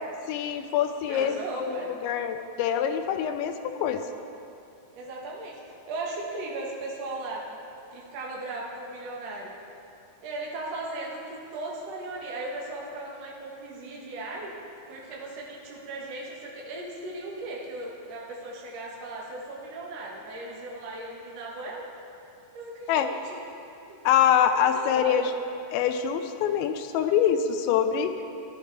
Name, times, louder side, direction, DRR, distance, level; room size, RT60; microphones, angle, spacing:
voice 1, 0.3-4.0 22.9-23.1 24.1-25.3 25.7-28.1, left 9 dB, 85° left, 8 dB, 2.9 m, -25 dB
voice 2, 1.1-1.9 4.9-7.4 7.9-9.5 10.2-14.5 14.9-21.9 22.5-23.4 23.9-24.0 24.7-25.2, right 2 dB, 75° right, -3 dB, 1.4 m, -37 dB
16.0 x 11.5 x 3.4 m, 2.7 s
omnidirectional pair, 5.2 m